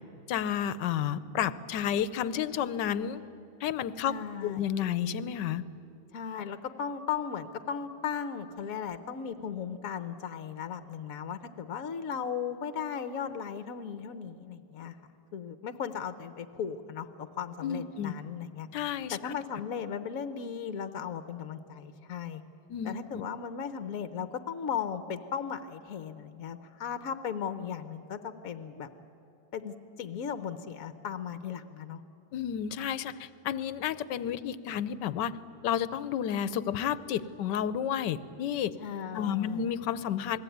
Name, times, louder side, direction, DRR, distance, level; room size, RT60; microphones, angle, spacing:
voice 1, 0.3-3.2 3.6-4.1 4.4-5.6 17.6-18.1 18.7-19.3 22.7-23.2 32.3-35.4 35.6-38.7 39.1-40.4, left 9 dB, 80° left, 16 dB, 1.4 m, -31 dB
voice 2, 4.0-4.6 6.1-15.0 15.3-18.7 19.1-22.4 22.8-28.9 29.5-32.0 38.8-39.7, left 7 dB, 60° left, 10 dB, 1.2 m, -36 dB
28.0 x 20.0 x 9.3 m, 2.8 s
omnidirectional pair, 1.9 m